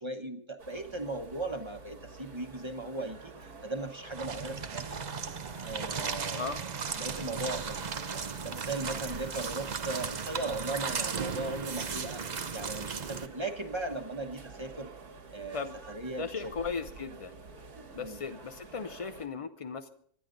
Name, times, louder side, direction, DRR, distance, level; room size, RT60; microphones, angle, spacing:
voice 1, 0.0-5.0 5.6-6.5 7.0-12.2 12.5-14.9 15.3-16.5 18.0-18.2, right 2 dB, 20° right, 6 dB, 1.0 m, -38 dB
sound 1, 0.6-19.3, right 4 dB, 85° right, 2.4 m, -49 dB
sound 2, 4.1-13.3, right 6 dB, 45° right, 0.6 m, -36 dB
voice 2, 6.2-6.6 15.5-15.8 16.2-17.4 17.9-19.9, left 5 dB, 50° left, 8 dB, 0.3 m, -37 dB
26.5 x 10.5 x 3.9 m, 0.62 s
omnidirectional pair, 1.6 m